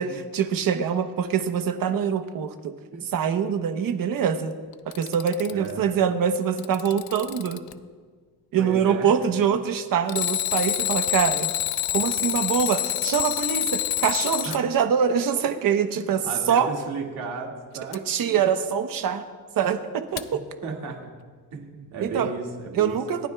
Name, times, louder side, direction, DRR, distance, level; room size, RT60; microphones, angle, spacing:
voice 1, 0.3-2.7 3.1-4.5 4.9-7.6 8.5-11.5 11.9-16.7 18.1-19.2 19.6-19.8 20.1-20.4 22.0-22.3 22.7-23.3, right 7 dB, 60° right, 7 dB, 1.0 m, -24 dB
Alarm, 4.7-5.7 6.4-7.7 10.1-14.6 17.9-18.0 20.2-20.3, left 13 dB, 75° left, 0.7 m, -27 dB
voice 2, 5.5-5.8 8.6-9.1 13.6-13.8 14.4-14.7 15.9-18.0 18.3-18.4 20.6-21.1 21.5-23.0, right 4 dB, 85° right, 0 dB, 2.3 m, -34 dB
28.5 x 12.5 x 2.3 m, 1.5 s
cardioid pair, 160°, 38 cm